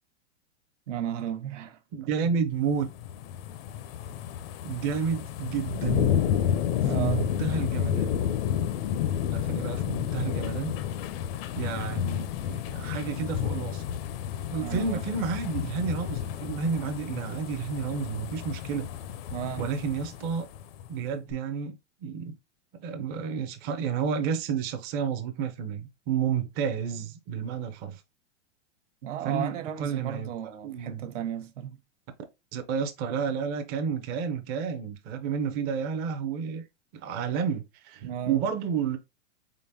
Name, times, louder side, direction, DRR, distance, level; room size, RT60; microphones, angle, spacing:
voice 1, 0.9-1.8 2.2-2.3 6.8-7.4 14.6-15.0 19.3-19.7 29.0-31.8 38.0-38.4, right 10 dB, 75° right, 1.0 m, -34 dB
voice 2, 1.9-2.9 4.6-6.2 6.9-8.1 9.3-10.7 11.6-13.8 14.5-18.9 19.6-20.5 20.9-22.4 22.8-28.0 29.2-30.3 30.6-31.0 32.5-36.7 36.9-39.0, right 6 dB, 25° right, 0.5 m, -31 dB
sound 1, 2.7-20.9 21.3-21.4, left 10 dB, 50° left, 0.5 m, -31 dB
4.0 x 3.8 x 2.6 m
supercardioid pair, 145°, 37 cm